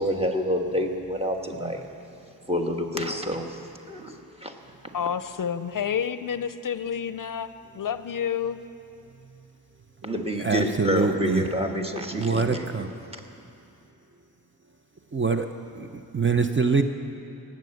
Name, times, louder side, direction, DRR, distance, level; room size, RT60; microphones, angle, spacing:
voice 1, 0.0-1.8 2.5-3.6 3.9-4.5 4.8-5.0 10.0-12.7 13.1-13.2, equal, 15° right, 3 dB, 1.4 m, -28 dB
voice 2, 4.9-8.6, left 8 dB, 60° left, 13 dB, 0.5 m, -29 dB
voice 3, 10.4-11.5 12.1-12.9 15.1-15.5 15.7-16.8, right 5 dB, 30° right, 6 dB, 0.6 m, -24 dB
18.5 x 7.5 x 7.7 m, 2.8 s
wide cardioid pair, 70°, 37 cm